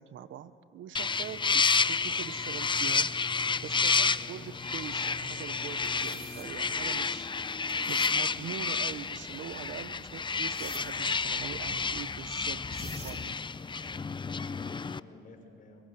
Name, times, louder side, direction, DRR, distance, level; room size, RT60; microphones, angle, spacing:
voice 1, 0.0-3.1 3.6-7.3 7.9-13.4, right 10 dB, 75° right, 13 dB, 1.1 m, -43 dB
sound 1, 1.0-15.0, left 5 dB, 25° left, 0.6 m, -30 dB
voice 2, 4.1-4.5 13.6-15.9, left 3 dB, 45° left, 3 dB, 6.0 m, -55 dB
sound 2, 4.5-8.8, equal, 5° right, 3.3 m, -51 dB
sound 3, 5.8-6.5 7.7-8.2 10.5-10.8 12.3-12.4 12.7-13.2, right 3 dB, 35° right, 5.2 m, -47 dB
26.0 x 22.5 x 9.9 m, 2.6 s
cardioid pair, 90°, 20 cm